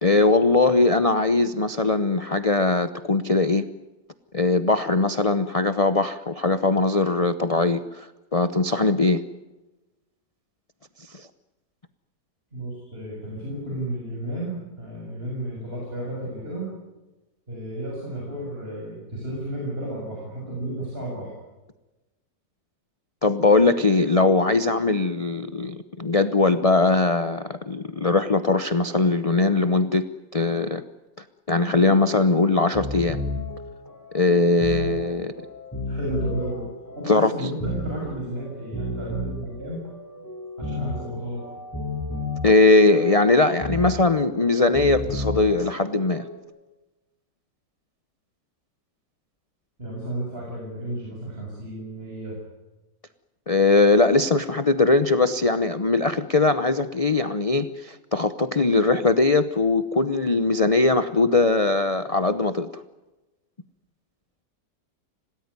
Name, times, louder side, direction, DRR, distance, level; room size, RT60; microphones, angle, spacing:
voice 1, 0.0-3.7 4.3-9.2 11.1-11.3 23.2-30.1 30.3-30.8 31.5-33.2 34.1-35.3 37.1-37.3 42.4-46.3 53.5-62.8, left 3 dB, 35° left, 11 dB, 0.6 m, -20 dB
voice 2, 12.5-16.8 17.5-21.3 35.9-36.7 37.0-39.9 40.6-41.5 49.8-52.4, right 1 dB, 30° right, -3 dB, 7.1 m, -33 dB
sound 1, 32.1-46.4, left 1 dB, 10° left, 4.8 m, -33 dB
27.0 x 19.0 x 9.7 m, 1.1 s
omnidirectional pair, 1.9 m